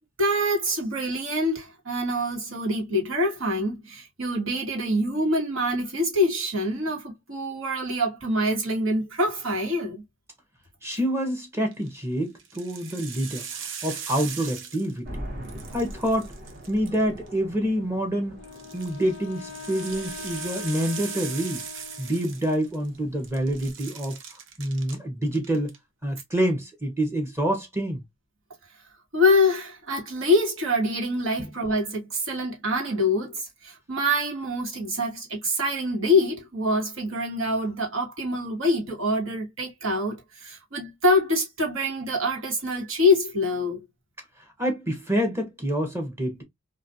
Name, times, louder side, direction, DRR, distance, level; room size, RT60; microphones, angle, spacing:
voice 1, 0.2-10.0 29.1-43.8, left 1 dB, 85° right, 1.2 m, -25 dB
voice 2, 10.8-13.4 13.8-15.2 15.7-16.3 16.7-18.4 18.7-21.6 22.0-24.2 24.6-25.7 26.0-28.0 44.6-46.4, right 1 dB, 15° right, 0.7 m, -27 dB
sound 1, 11.6-11.9 12.4-15.2 15.4-17.3 18.4-23.0 23.2-25.0 25.3-25.8, right 7 dB, 65° right, 0.6 m, -39 dB
sound 2, 15.0-23.7, equal, 45° right, 1.0 m, -43 dB
Wind instrument woodwind instrument, 18.3-22.6, left 6 dB, 70° left, 0.4 m, -42 dB
2.3 x 2.2 x 2.6 m
head